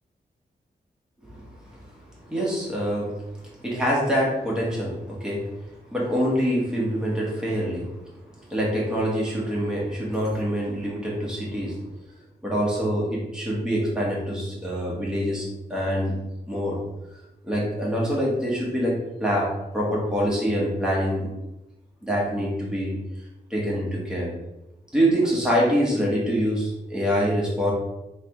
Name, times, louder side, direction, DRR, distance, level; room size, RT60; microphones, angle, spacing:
voice 1, 2.3-3.1 3.6-5.4 5.9-7.9 8.5-11.8 12.4-16.1 16.5-16.8 17.4-18.9 19.2-21.3 22.0-22.9 23.5-24.3 24.9-27.7, equal, 5° right, -5 dB, 1.4 m, -25 dB
3.3 x 3.3 x 4.5 m, 0.96 s
wide cardioid pair, 150°, 16 cm